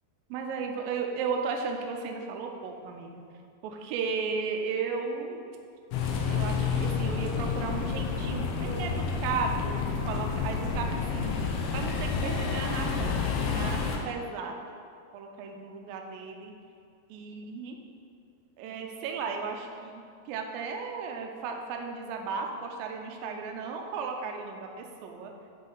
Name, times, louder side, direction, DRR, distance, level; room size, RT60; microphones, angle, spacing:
voice 1, 0.3-3.2 3.6-5.4 6.3-9.0 9.2-10.9 11.1-11.4 11.7-14.8 15.1-16.5 17.1-17.8 18.6-25.3, right 5 dB, 85° right, 2 dB, 2.0 m, -35 dB
sound 1, 5.9-14.0, left 5 dB, 80° left, 2.4 m, -29 dB
9.5 x 4.0 x 3.9 m, 2.3 s
omnidirectional pair, 4.8 m